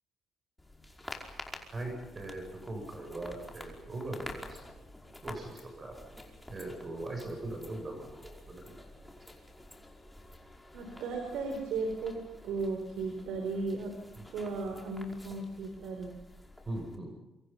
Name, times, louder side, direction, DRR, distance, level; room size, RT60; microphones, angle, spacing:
sound 1, 0.6-17.0, left 1 dB, 10° left, 5.2 m, -50 dB
voice 1, 1.7-4.6 5.2-6.0 6.5-8.8 14.2-14.3 16.7-17.1, right 2 dB, 35° right, 2 dB, 7.5 m, -40 dB
voice 2, 10.7-12.2 12.4-13.9 14.3-16.1, right 3 dB, 85° right, 4 dB, 4.5 m, -35 dB
27.5 x 25.0 x 5.8 m, 0.98 s
cardioid pair, 90°, 0 cm